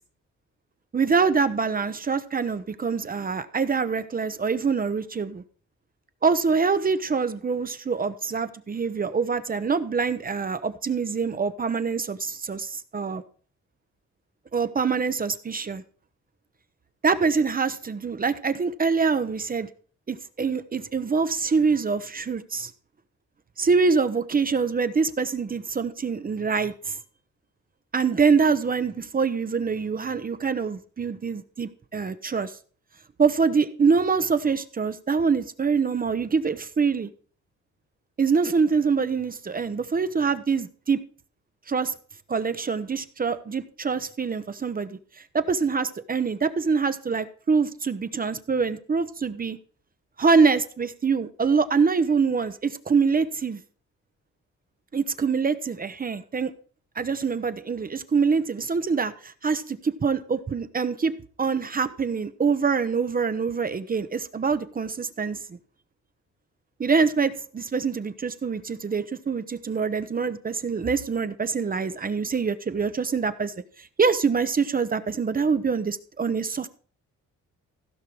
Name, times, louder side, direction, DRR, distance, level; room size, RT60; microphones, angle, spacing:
voice 1, 0.9-5.4 6.2-13.2 14.5-15.8 17.0-19.7 20.1-22.7 23.6-27.0 27.9-32.6 33.2-37.1 38.2-41.0 41.7-41.9 42.3-45.0 45.3-49.6 50.2-53.6 54.9-56.5 57.0-65.6 66.8-73.5 73.8-76.7, right 5 dB, 30° right, 0.7 m, -25 dB
15.5 x 5.7 x 4.7 m
cardioid pair, 90°, 30 cm